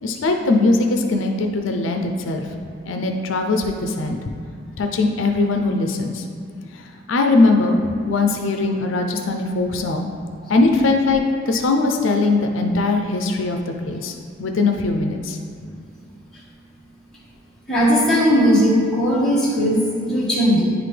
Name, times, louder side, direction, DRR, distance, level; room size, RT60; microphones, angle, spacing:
voice 1, 0.0-2.5 2.8-4.2 4.8-6.3 6.7-6.8 7.1-7.8 8.0-10.1 10.5-14.1 14.4-15.4, left 3 dB, 80° left, 4 dB, 0.5 m, -20 dB
voice 2, 17.7-20.7, equal, 5° left, -9 dB, 1.5 m, -17 dB
9.9 x 4.0 x 3.3 m, 2.4 s
head